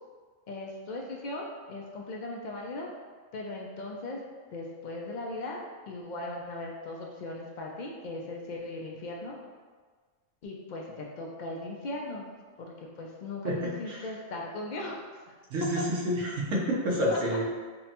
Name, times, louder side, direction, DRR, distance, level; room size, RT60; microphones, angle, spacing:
voice 1, 0.5-2.9 3.3-4.2 4.5-9.4 10.4-12.3 12.6-15.0 15.8-15.9 17.1-17.2, left 2 dB, 70° left, -1 dB, 0.4 m, -38 dB
voice 2, 13.4-14.0 15.5-17.4, equal, 75° right, -3 dB, 1.2 m, -29 dB
5.3 x 2.1 x 2.9 m, 1.5 s
omnidirectional pair, 1.3 m